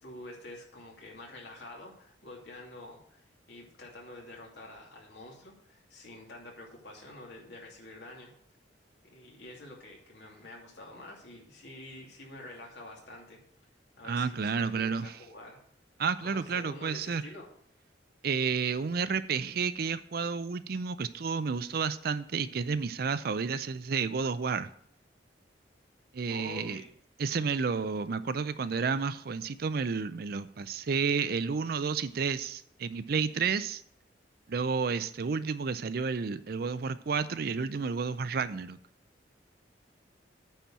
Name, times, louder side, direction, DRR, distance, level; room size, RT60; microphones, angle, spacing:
voice 1, 0.0-8.3 9.0-13.4 14.0-15.6 16.2-17.5 26.3-26.9, left 1 dB, 70° left, -1 dB, 2.6 m, -47 dB
voice 2, 14.0-15.1 16.0-17.2 18.2-24.7 26.1-26.8 27.2-33.8 34.5-38.8, right 5 dB, 55° right, 14 dB, 0.5 m, -31 dB
9.0 x 4.4 x 7.4 m, 0.64 s
head